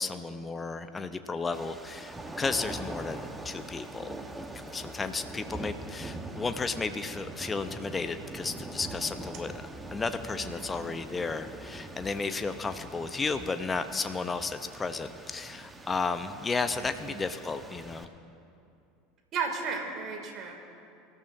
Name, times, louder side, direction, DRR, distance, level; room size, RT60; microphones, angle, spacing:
voice 1, 0.0-4.2 4.7-18.1, left 4 dB, 20° left, 10 dB, 0.7 m, -33 dB
sound 1, 1.5-18.1, right 2 dB, 10° right, 1.2 m, -43 dB
voice 2, 10.3-11.0 16.7-17.2 19.3-20.5, right 5 dB, 45° right, 2 dB, 2.5 m, -35 dB
25.0 x 13.5 x 2.7 m, 2.5 s
figure-of-eight pair, 75°, 0 cm